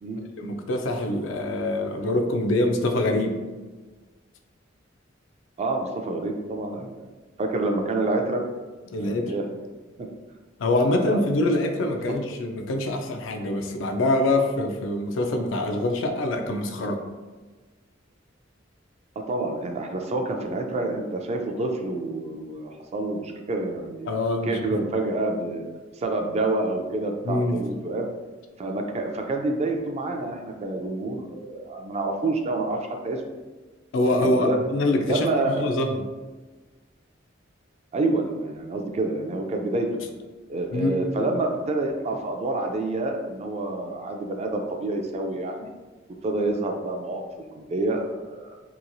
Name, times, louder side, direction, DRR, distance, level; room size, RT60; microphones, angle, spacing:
voice 1, 0.4-3.4 8.9-9.3 10.6-17.0 24.1-24.6 27.2-27.6 33.9-36.1 40.7-41.0, left 1 dB, 75° left, 5 dB, 0.4 m, -24 dB
voice 2, 5.6-6.9 7.4-8.4 9.0-9.4 10.0-10.1 10.9-11.2 19.2-24.1 24.4-25.6 25.9-28.1 28.6-32.8 33.0-33.2 34.2-34.6 35.0-35.7 37.9-39.9 40.5-45.7 46.2-47.2 47.5-48.6, right 2 dB, 35° right, 3 dB, 0.3 m, -28 dB
2.9 x 2.3 x 2.6 m, 1.3 s
head